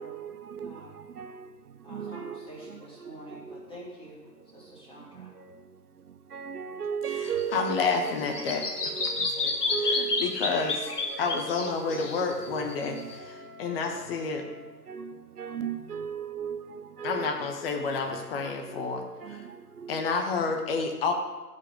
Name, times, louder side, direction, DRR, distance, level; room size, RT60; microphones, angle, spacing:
voice 1, 0.0-0.8 1.2-1.5 1.9-3.1 3.5-3.6 6.3-13.1 13.9-14.0 14.9-17.3 18.1-18.2 18.6-18.9 19.2-20.0, right 7 dB, 65° right, 1.1 m, -37 dB
voice 2, 0.6-1.0 1.8-5.3, equal, 10° left, 2.8 m, -47 dB
Bird vocalization bird call bird song, 7.2-13.1, left 3 dB, 70° left, 1.6 m, -31 dB
voice 3, 7.5-8.9 9.4-9.5 9.8-10.9 11.2-14.5 17.0-19.0 19.3-19.4 19.9-21.1, left 4 dB, 35° left, 1.4 m, -30 dB
Wind instrument woodwind instrument, 10.1-14.8, left 4 dB, 10° right, 2.2 m, -49 dB
16.5 x 5.5 x 5.2 m
figure-of-eight pair, 125°, 48 cm